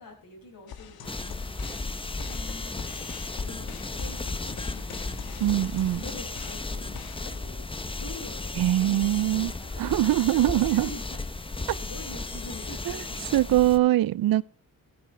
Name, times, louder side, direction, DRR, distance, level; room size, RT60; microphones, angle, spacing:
voice 1, 0.0-1.4 2.2-3.1 3.4-7.6 8.0-13.9, left 2 dB, 65° left, 6.6 m, -46 dB
sound 1, 0.7-7.4, left 7 dB, 90° left, 1.3 m, -45 dB
sound 2, 1.0-13.8, left 3 dB, 15° left, 0.7 m, -35 dB
Thunder, 3.5-9.9 10.3-10.9 11.3-12.1, left 2 dB, 45° left, 2.2 m, -51 dB
voice 2, 5.4-6.0 8.6-9.5 9.8-10.9 11.7-11.8 13.3-14.4, right 14 dB, 75° right, 0.5 m, -22 dB
15.5 x 14.0 x 3.3 m
wide cardioid pair, 115°, 36 cm